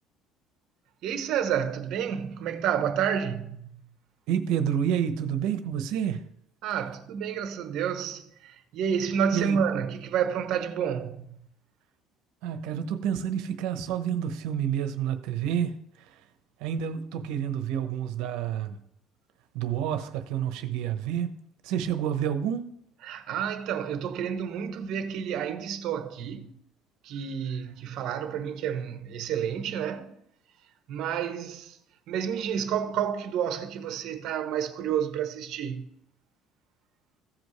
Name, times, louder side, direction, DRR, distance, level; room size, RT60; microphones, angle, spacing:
voice 1, 1.0-3.9 6.6-11.5 23.0-26.5 27.0-30.2 30.9-31.8 32.1-35.9, right 8 dB, 60° right, 1.2 m, -30 dB
voice 2, 4.3-6.2 9.3-9.6 12.4-15.8 16.1-16.2 16.6-18.8 19.5-22.7, right 9 dB, 80° right, 1.0 m, -29 dB
15.5 x 5.3 x 3.2 m
cardioid pair, 135°, 0 cm